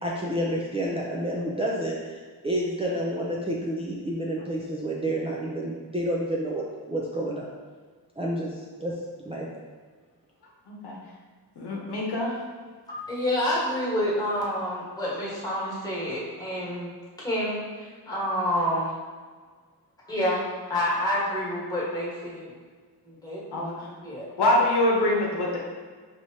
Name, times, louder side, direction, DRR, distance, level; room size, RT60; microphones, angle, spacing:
voice 1, 0.0-7.5 8.2-8.9 9.2-9.5, right 1 dB, 15° right, -4 dB, 0.4 m, -29 dB
voice 2, 10.7-11.0 11.6-12.3 23.5-23.9 24.4-25.6, left 1 dB, 75° left, -3 dB, 1.0 m, -24 dB
voice 3, 12.9-16.9 17.2-18.9 20.0-22.5 23.0-24.3, left 1 dB, 10° left, -7 dB, 1.4 m, -28 dB
4.8 x 3.0 x 2.8 m, 1.5 s
wide cardioid pair, 100°, 40 cm